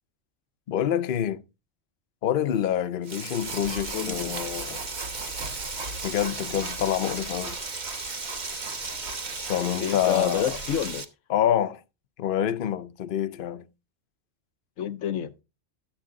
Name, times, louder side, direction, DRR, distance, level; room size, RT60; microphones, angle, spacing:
voice 1, 0.7-1.4 2.2-4.9 6.0-7.6 9.5-10.6 11.3-11.8 12.2-13.6, left 10 dB, 50° left, 0.8 m, -27 dB
Frying (food), 3.0-11.0, right 3 dB, 35° right, 1.3 m, -36 dB
sound 1, 3.4-10.9, right 3 dB, 60° right, 1.7 m, -39 dB
voice 2, 3.9-4.3 9.8-11.0 14.8-15.3, left 10 dB, 85° left, 1.1 m, -28 dB
13.0 x 8.0 x 3.7 m
omnidirectional pair, 1.3 m